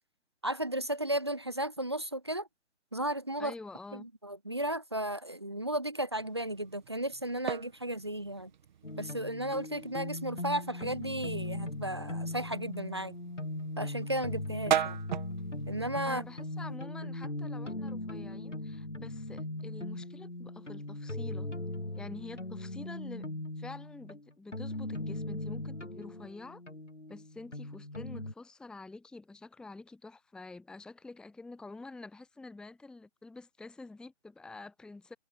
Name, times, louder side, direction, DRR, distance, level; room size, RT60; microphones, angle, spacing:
voice 1, 0.4-2.5 2.9-3.5 3.9-8.5 9.0-13.1 13.8-15.0 15.7-16.2, right 1 dB, 25° right, 0.4 m, -34 dB
voice 2, 3.4-4.1 16.0-21.5 21.9-23.3 23.6-26.6 27.1-35.2, left 3 dB, ahead, 1.6 m, -47 dB
sound 1, 6.1-16.8, right 9 dB, 40° right, 3.1 m, -40 dB
sound 2, 8.8-28.3, left 1 dB, 85° left, 4.0 m, -39 dB
figure-of-eight pair, 135°, 35 cm